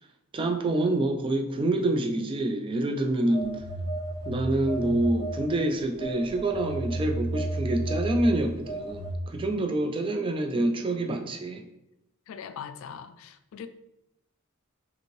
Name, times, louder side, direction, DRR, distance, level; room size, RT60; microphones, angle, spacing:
voice 1, 0.3-3.6 4.3-11.6, right 1 dB, 25° right, 0.4 m, -27 dB
Telephone, 3.3-5.6 6.0-9.1, right 2 dB, 50° right, 1.3 m, -32 dB
voice 2, 9.5-9.9 12.3-13.7, left 7 dB, 65° left, 0.3 m, -41 dB
5.4 x 2.6 x 3.0 m
head